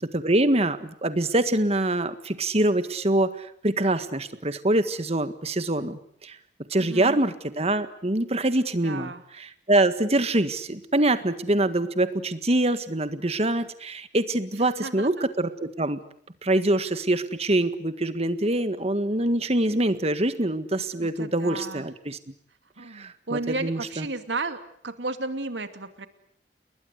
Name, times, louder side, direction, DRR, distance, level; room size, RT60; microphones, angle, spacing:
voice 1, 0.1-6.4 6.7-9.1 9.7-16.0 16.4-22.2 22.9-24.0, right 1 dB, 35° right, 11 dB, 1.7 m, -24 dB
voice 2, 6.8-7.2 8.8-9.2 14.5-15.3 21.0-21.9 22.8-26.1, right 3 dB, 85° right, 8 dB, 2.5 m, -33 dB
29.5 x 21.0 x 8.2 m, 0.64 s
head